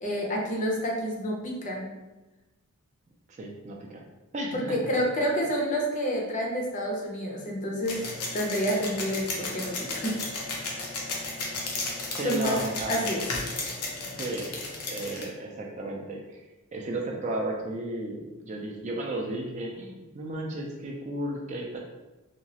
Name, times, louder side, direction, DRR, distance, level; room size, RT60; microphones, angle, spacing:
voice 1, 0.0-1.9 4.5-8.1 8.3-10.1 12.2-12.6 12.9-13.2, equal, 35° left, -2 dB, 0.5 m, -29 dB
voice 2, 3.3-4.0 4.3-4.8 12.1-13.0 14.2-16.4 16.7-21.8, right 1 dB, 30° right, 0 dB, 0.3 m, -34 dB
sound 1, 7.8-15.2, left 3 dB, 85° left, 0.6 m, -34 dB
2.9 x 2.3 x 2.8 m, 1.1 s
head